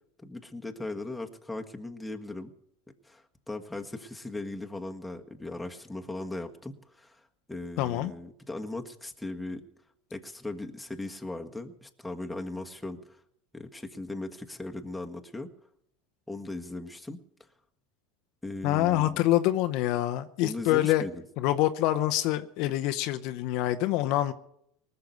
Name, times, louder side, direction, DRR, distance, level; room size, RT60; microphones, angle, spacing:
voice 1, 0.2-2.5 3.0-7.2 7.5-9.6 10.1-13.2 13.5-15.5 16.3-17.2 18.4-19.2 20.4-21.2, left 2 dB, 5° left, 1.6 m, -38 dB
voice 2, 7.8-8.1 18.6-21.0 21.4-24.3, left 14 dB, 60° left, 0.8 m, -26 dB
19.5 x 6.9 x 9.3 m
hypercardioid pair, 100°, 0 cm